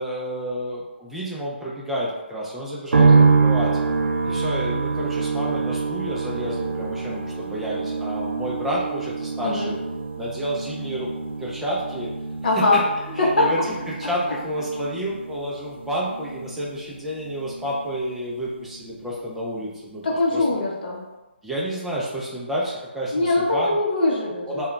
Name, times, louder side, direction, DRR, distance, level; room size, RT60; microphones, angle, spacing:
voice 1, 0.0-3.1 3.4-3.8 4.2-9.8 10.2-11.1 11.4-12.1 12.6-12.8 13.1-20.0 20.3-20.4 21.4-23.8 24.5-24.7, equal, 5° right, -6 dB, 0.4 m, -30 dB
sound 1, 2.9-18.2 18.4-19.3, right 4 dB, 75° right, 0.4 m, -25 dB
voice 2, 9.4-9.7 12.4-12.8 13.2-13.5 20.0-21.0 23.1-24.7, left 2 dB, 50° left, -3 dB, 0.7 m, -22 dB
2.2 x 2.2 x 3.7 m, 1.1 s
hypercardioid pair, 160°, 6 cm